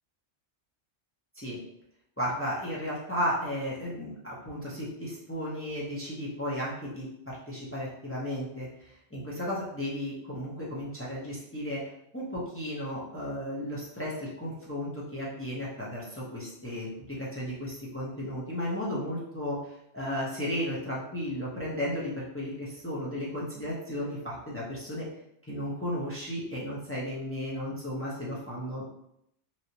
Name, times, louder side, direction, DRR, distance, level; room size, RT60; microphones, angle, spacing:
voice 1, 2.2-11.8 12.1-25.1 25.5-28.9, equal, 15° left, -7 dB, 0.5 m, -34 dB
3.0 x 2.7 x 2.8 m, 0.77 s
omnidirectional pair, 1.3 m